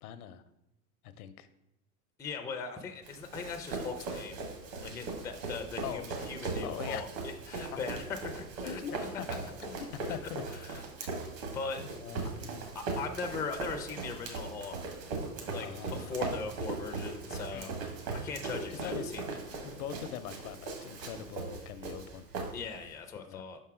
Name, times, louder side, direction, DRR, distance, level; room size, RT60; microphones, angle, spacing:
voice 1, 0.0-0.4 1.0-1.5 4.8-5.0 5.8-6.0 6.6-7.0 7.7-7.8 8.6-9.3 9.6-10.4 11.0-11.1 11.8-12.7 15.6-16.2 17.5-17.7 18.7-19.1 19.5-22.3 23.2-23.4, left 9 dB, 75° left, 12 dB, 0.7 m, -42 dB
voice 2, 2.2-4.4 4.8-8.8 10.6-10.9 11.5-11.8 12.7-14.8 15.5-17.7 18.1-19.2 19.5-19.6 22.5-23.6, left 5 dB, 10° left, 6 dB, 0.4 m, -39 dB
Run, 3.0-22.9, right 3 dB, 60° right, 1.9 m, -39 dB
5.4 x 4.7 x 4.9 m, 0.88 s
hypercardioid pair, 95°, 45 cm